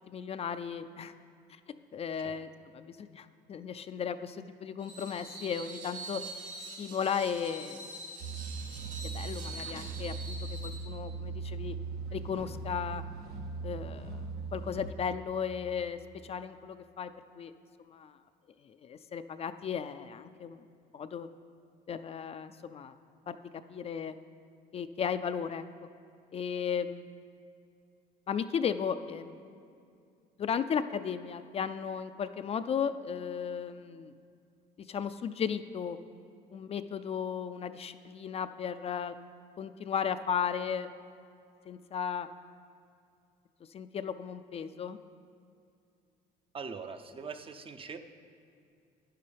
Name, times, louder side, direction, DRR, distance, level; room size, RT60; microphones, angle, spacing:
voice 1, 0.1-1.1 1.5-1.6 1.9-6.2 6.8-7.9 9.1-11.8 12.1-13.0 13.6-14.2 14.5-17.1 17.4-17.5 17.8-18.2 18.6-20.6 20.9-21.3 21.9-23.0 23.3-24.2 24.7-25.6 26.3-27.1 28.3-29.4 30.4-34.1 34.8-36.0 36.5-39.2 39.6-40.9 41.7-42.3 43.7-45.0, left 7 dB, 35° left, 10 dB, 0.4 m, -35 dB
Screech, 4.8-10.8, right 2 dB, 50° right, 1.9 m, -44 dB
sound 1, 8.2-14.9, right 4 dB, 70° right, 0.8 m, -39 dB
voice 2, 46.5-48.0, right 5 dB, 30° right, 8 dB, 0.6 m, -42 dB
12.0 x 9.9 x 3.4 m, 2.4 s
cardioid pair, 110°, 17 cm